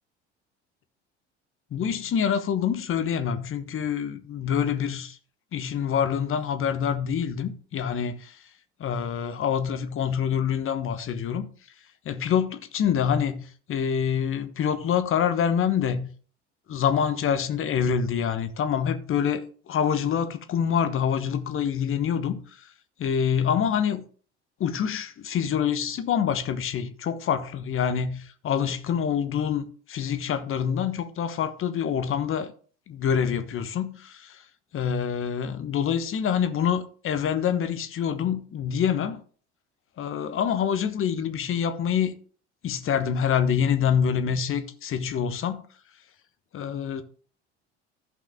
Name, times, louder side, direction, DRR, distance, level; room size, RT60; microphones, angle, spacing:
voice 1, 1.7-5.2 5.5-8.4 8.8-11.5 12.0-16.1 16.7-22.7 23.0-24.0 24.6-32.5 32.9-34.4 34.7-39.2 40.0-42.1 42.6-45.6 46.5-47.0, left 8 dB, 40° left, 1.2 m, -26 dB
14.0 x 5.6 x 3.6 m
figure-of-eight pair, 60°, 34 cm